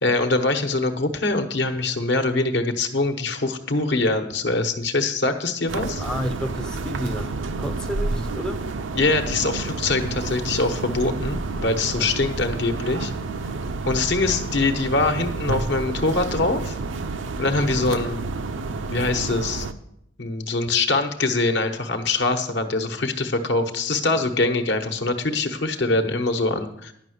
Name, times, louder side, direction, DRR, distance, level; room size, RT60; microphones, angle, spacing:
voice 1, 0.0-6.0 8.9-13.1 13.9-16.7 17.4-18.2 18.9-19.7 20.2-26.9, left 3 dB, 65° left, 6 dB, 1.1 m, -23 dB
sound 1, 5.7-19.7, right 3 dB, 85° right, 0.6 m, -29 dB
voice 2, 6.0-8.7 17.6-17.8 24.1-24.3, equal, 5° left, 5 dB, 0.5 m, -31 dB
10.5 x 5.7 x 7.8 m, 0.76 s
head